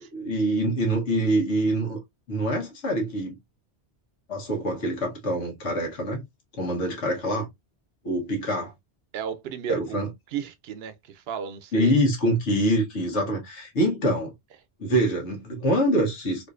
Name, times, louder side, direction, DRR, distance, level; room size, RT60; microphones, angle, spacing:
voice 1, 0.1-2.0 2.3-3.4 4.3-6.2 6.6-7.5 8.0-8.7 9.7-10.1 11.7-14.3 14.8-16.5, right 1 dB, 85° left, 1.5 m, -25 dB
voice 2, 9.1-10.0 10.3-11.9, right 8 dB, 65° right, 0.8 m, -33 dB
4.3 x 2.6 x 2.5 m
omnidirectional pair, 1.1 m